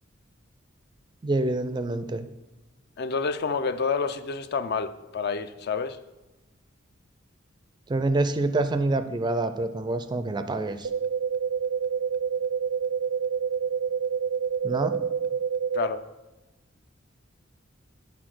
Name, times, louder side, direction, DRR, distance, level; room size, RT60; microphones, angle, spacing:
voice 1, 1.2-2.3 7.9-10.9 14.6-15.0, right 2 dB, 20° right, 10 dB, 0.4 m, -26 dB
voice 2, 3.0-6.0 15.7-16.0, left 5 dB, 55° left, 11 dB, 0.4 m, -28 dB
sound 1, 10.8-15.9, right 7 dB, 90° right, 0.4 m, -27 dB
8.4 x 4.1 x 6.1 m, 1.1 s
head